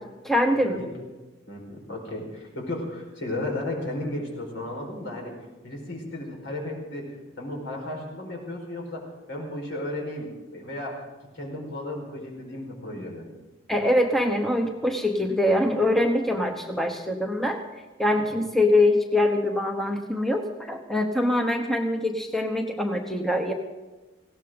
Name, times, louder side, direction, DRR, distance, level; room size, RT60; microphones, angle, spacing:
voice 1, 0.2-0.8 12.9-13.0 13.7-17.6 18.0-23.5, left 1 dB, ahead, 3 dB, 1.0 m, -24 dB
voice 2, 1.5-11.0 11.3-13.2, left 1 dB, 65° left, 0 dB, 5.0 m, -34 dB
19.5 x 17.0 x 3.9 m, 1.2 s
head